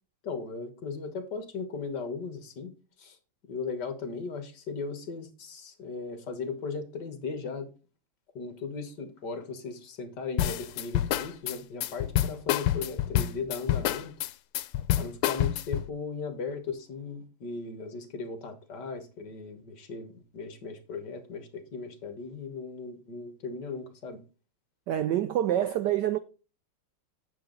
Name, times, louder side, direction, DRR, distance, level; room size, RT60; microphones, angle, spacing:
voice 1, 0.2-3.2 3.5-7.7 8.4-14.1 15.0-24.2, left 4 dB, 55° left, 1.9 m, -37 dB
sound 1, 10.4-15.9, left 12 dB, 85° left, 1.5 m, -27 dB
voice 2, 24.9-26.2, right 11 dB, 75° right, 1.0 m, -26 dB
9.5 x 7.1 x 3.9 m
omnidirectional pair, 2.4 m